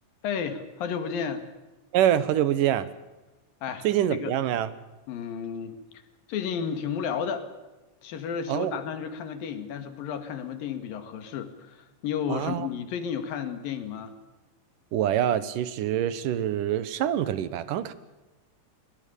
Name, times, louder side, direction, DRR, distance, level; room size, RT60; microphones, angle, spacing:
voice 1, 0.2-1.5 3.6-4.3 5.1-5.8 6.3-7.5 8.0-14.1, left 7 dB, 90° left, 9 dB, 3.8 m, -32 dB
voice 2, 1.9-2.9 3.8-4.7 8.5-8.8 12.3-12.7 14.9-17.9, right 11 dB, 70° right, 15 dB, 2.7 m, -25 dB
23.0 x 20.5 x 7.0 m, 1.1 s
omnidirectional pair, 4.0 m